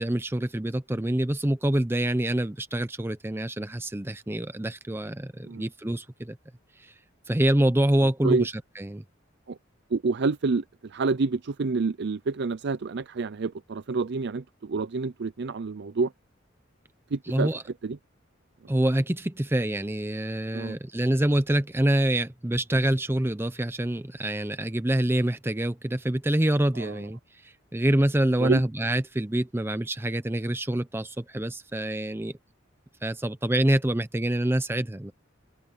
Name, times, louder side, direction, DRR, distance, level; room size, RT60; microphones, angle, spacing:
voice 1, 0.0-6.4 6.8-6.9 7.3-9.0 17.3-17.6 18.7-32.3 33.0-35.1, right 1 dB, 10° right, 0.7 m, -26 dB
voice 2, 9.9-16.1 17.1-17.5 17.8-18.0 20.5-20.8 26.8-27.0 28.4-28.6, right 4 dB, 60° right, 0.5 m, -28 dB
open air
head